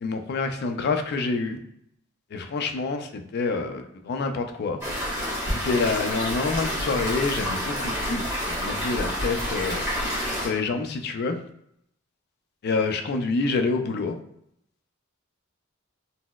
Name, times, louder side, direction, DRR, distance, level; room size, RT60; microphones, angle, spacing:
voice 1, 0.0-1.6 2.3-4.8 5.6-11.4 12.6-14.2, left 4 dB, 50° left, 6 dB, 0.4 m, -27 dB
sound 1, 4.8-10.5, equal, 15° right, 1.1 m, -28 dB
4.0 x 2.0 x 2.2 m, 0.73 s
head